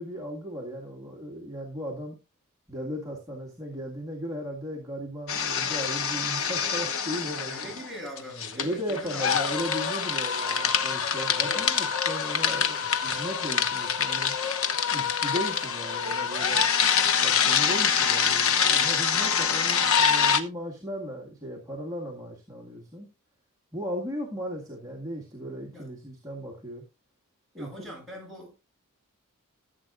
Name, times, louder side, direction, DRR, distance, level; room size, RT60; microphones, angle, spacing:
voice 1, 0.0-2.2 2.7-7.6 8.6-14.3 14.9-16.6 17.2-23.1 23.7-26.8 27.5-28.0, equal, 15° right, 2.0 m, -36 dB
sound 1, 5.3-7.9 8.2-20.4, left 7 dB, 65° left, 1.0 m, -25 dB
voice 2, 7.5-9.3 11.4-11.7 12.5-12.9 25.7-25.9 27.6-28.5, equal, ahead, 7.4 m, -42 dB
15.0 x 8.3 x 2.6 m
head